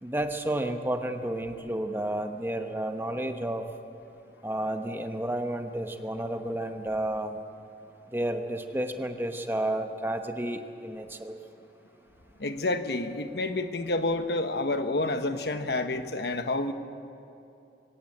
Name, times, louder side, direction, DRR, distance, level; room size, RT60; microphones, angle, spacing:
voice 1, 0.0-3.6 4.4-7.4 8.1-11.3, right 1 dB, 10° right, 6 dB, 1.0 m, -31 dB
voice 2, 12.4-16.7, left 2 dB, 70° left, 8 dB, 1.2 m, -29 dB
24.0 x 16.5 x 8.7 m, 2.8 s
head